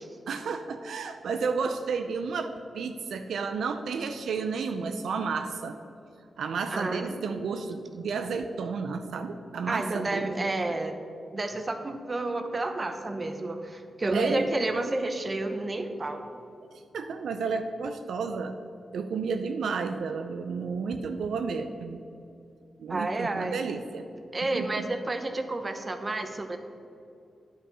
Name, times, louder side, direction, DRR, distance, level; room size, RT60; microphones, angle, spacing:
voice 1, 0.3-5.8 6.4-10.8 14.1-14.5 16.7-18.5 18.9-22.0 22.8-24.1 24.5-24.9, right 5 dB, 85° right, 7 dB, 0.4 m, -32 dB
voice 2, 6.7-7.1 9.7-11.0 11.3-16.2 22.9-23.6 24.3-26.6, right 2 dB, 35° right, 7 dB, 0.9 m, -30 dB
9.8 x 5.5 x 5.6 m, 2.6 s
cardioid pair, 70°, 0 cm